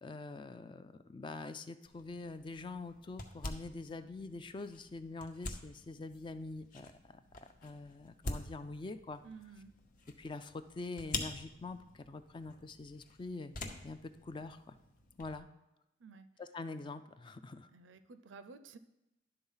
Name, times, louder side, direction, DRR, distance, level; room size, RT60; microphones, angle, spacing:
voice 1, 0.0-7.2 7.6-9.2 10.2-13.5 13.8-14.8 15.2-15.5 16.4-17.7, left 3 dB, 25° left, 11 dB, 0.3 m, -45 dB
sound 1, 1.8-15.4, left 2 dB, 45° left, 0.8 m, -47 dB
voice 2, 9.2-9.7 16.0-16.3 17.7-18.8, right 4 dB, 85° right, 12 dB, 0.5 m, -53 dB
11.0 x 3.9 x 5.5 m, 0.93 s
head